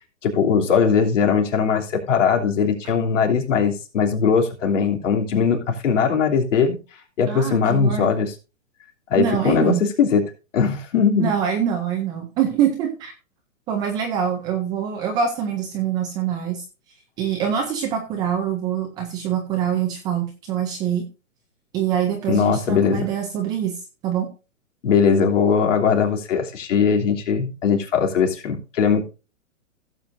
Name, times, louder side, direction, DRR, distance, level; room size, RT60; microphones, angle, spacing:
voice 1, 0.2-6.8 7.2-8.3 9.1-10.2 10.5-11.3 22.3-23.1 24.8-29.0, left 6 dB, 60° left, 2 dB, 3.0 m, -20 dB
voice 2, 7.3-8.1 9.1-9.8 11.0-13.1 13.7-16.6 17.2-21.1 21.7-24.3, right 9 dB, 10° right, 3 dB, 0.4 m, -24 dB
16.5 x 7.6 x 2.6 m, 0.32 s
hypercardioid pair, 140°, 42 cm